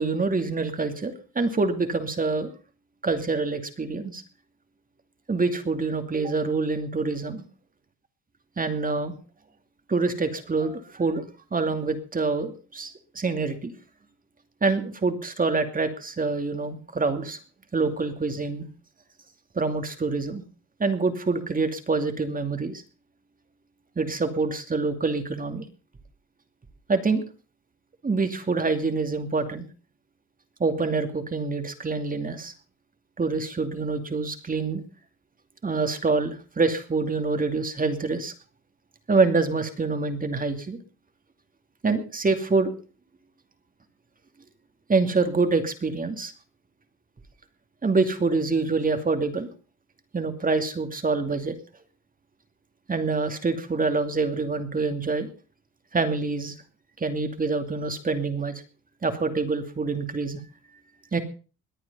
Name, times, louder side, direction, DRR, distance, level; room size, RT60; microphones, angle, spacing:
voice 1, 0.0-2.5 3.0-4.2 5.3-7.4 8.6-9.1 9.9-11.2 11.5-13.7 14.6-17.4 17.7-18.7 19.5-20.4 20.8-22.8 24.0-25.6 26.9-27.2 28.0-29.7 30.6-32.5 33.2-34.8 35.6-38.3 39.1-40.8 41.8-42.7 44.9-46.3 47.8-49.5 50.1-51.5 52.9-55.3 55.9-56.5 57.0-58.5 59.0-60.4 61.1-61.2, right 3 dB, 30° right, 8 dB, 2.6 m, -26 dB
21.5 x 8.8 x 5.5 m, 0.37 s
cardioid pair, 90°, 30 cm